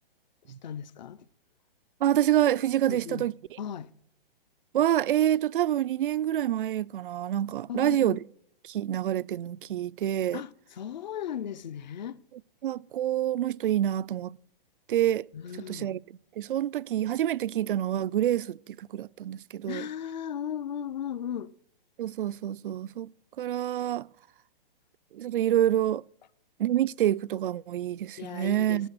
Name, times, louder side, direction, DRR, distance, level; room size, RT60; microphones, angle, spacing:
voice 1, 0.6-1.3 2.9-3.3 3.6-3.9 7.7-8.2 10.3-12.2 15.3-16.0 19.7-21.5 28.2-28.9, left 9 dB, 50° left, 0.6 m, -36 dB
voice 2, 2.0-3.6 4.7-8.2 8.6-10.4 12.6-14.4 14.9-15.3 15.7-16.0 16.4-19.9 22.0-23.1 23.4-24.1 25.1-26.0 26.6-28.9, right 12 dB, 65° right, 0.4 m, -27 dB
18.0 x 7.7 x 6.5 m
hypercardioid pair, 165°, 29 cm